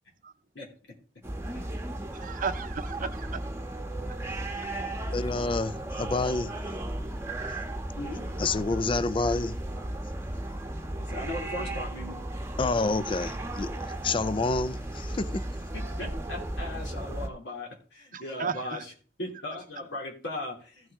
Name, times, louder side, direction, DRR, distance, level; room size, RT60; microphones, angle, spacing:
sound 1, 1.2-17.3, right 1 dB, 15° right, 1.1 m, -35 dB
voice 1, 2.1-3.4 18.1-18.8, right 5 dB, 45° right, 0.7 m, -34 dB
voice 2, 5.1-6.5 8.4-9.6 10.7-11.1 12.6-15.4, left 3 dB, 30° left, 0.4 m, -29 dB
voice 3, 11.0-12.2 15.7-18.9 19.2-20.9, left 1 dB, 75° left, 2.9 m, -38 dB
15.0 x 6.2 x 3.6 m
head